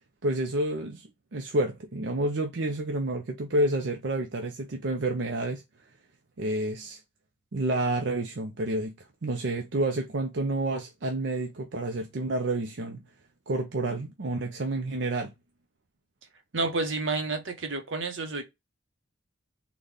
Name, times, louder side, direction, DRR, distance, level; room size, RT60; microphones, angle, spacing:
voice 1, 0.2-5.6 6.4-7.0 7.5-8.9 9.2-13.0 13.5-15.3, right 2 dB, 65° right, 0.6 m, -29 dB
voice 2, 16.5-18.4, right 3 dB, 85° right, 1.0 m, -30 dB
4.0 x 2.3 x 3.3 m
head